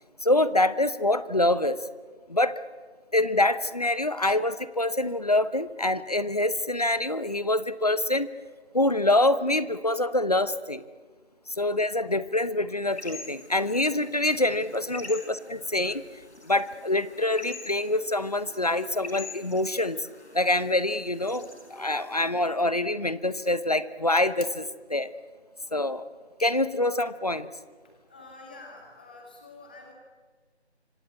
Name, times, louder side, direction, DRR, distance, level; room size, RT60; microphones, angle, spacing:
voice 1, 0.2-1.9 2.3-2.5 3.1-8.3 8.7-10.8 11.5-16.0 16.4-20.0 20.3-25.1 25.7-26.0 26.4-27.5, left 1 dB, 35° left, 15 dB, 1.0 m, -25 dB
sound 1, 12.9-22.3, left 3 dB, 85° left, 5.3 m, -45 dB
voice 2, 28.1-29.9, left 3 dB, 10° left, 0 dB, 2.0 m, -47 dB
26.0 x 26.0 x 8.3 m, 1.5 s
figure-of-eight pair, 175°, 33 cm